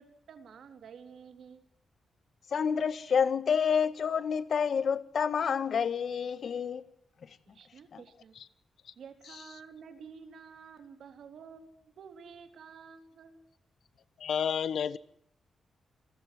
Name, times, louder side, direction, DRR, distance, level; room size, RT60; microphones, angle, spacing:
voice 1, 0.0-1.6 7.5-8.3 9.0-13.4, right 6 dB, 70° right, 3.5 m, -50 dB
voice 2, 2.5-6.8 7.9-8.0, left 7 dB, 55° left, 1.4 m, -28 dB
voice 3, 14.2-15.0, left 8 dB, 75° left, 1.2 m, -30 dB
28.0 x 21.0 x 7.8 m
wide cardioid pair, 145°, 0 cm